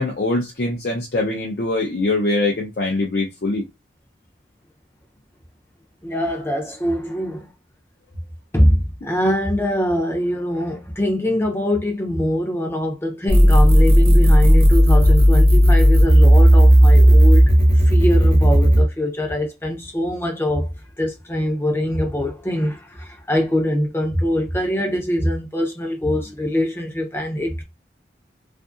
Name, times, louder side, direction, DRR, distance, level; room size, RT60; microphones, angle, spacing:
voice 1, 0.0-3.6, left 2 dB, 60° left, 0.5 m, -23 dB
voice 2, 6.0-7.5 8.5-17.4 17.7-20.7 21.0-27.6, left 1 dB, 15° left, 0.5 m, -23 dB
sound 1, 13.3-18.8, equal, 30° right, 0.6 m, -12 dB
2.5 x 2.5 x 2.4 m
head